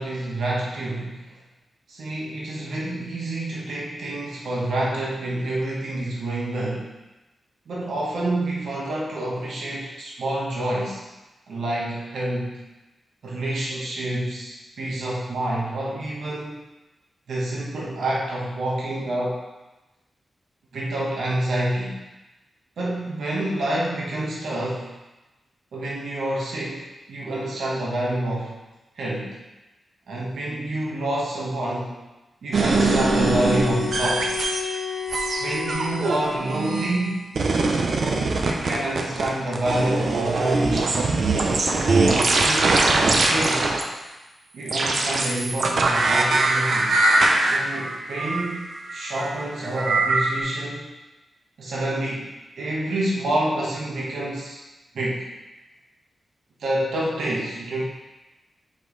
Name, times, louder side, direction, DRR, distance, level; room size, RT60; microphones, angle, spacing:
voice 1, 0.0-1.3 1.9-6.9 7.7-11.0 11.5-12.6 13.2-16.6 17.3-19.4 20.7-22.0 22.8-24.9 25.7-28.6 28.9-29.4 30.1-32.0 32.4-34.3 35.4-37.3 38.4-41.1 41.8-43.8 44.5-47.0 47.4-50.9 51.6-52.3 52.6-54.6 54.9-55.3 56.6-57.8, right 1 dB, 75° right, -5 dB, 1.3 m, -28 dB
sound 1, 32.5-34.8 35.1-37.1 37.4-43.8 44.7-50.4, right 3 dB, 55° right, 0.7 m, -22 dB
sound 2, 32.7-36.6, left 8 dB, 45° left, 0.4 m, -31 dB
6.0 x 5.2 x 3.2 m, 1.1 s
wide cardioid pair, 155°, 0 cm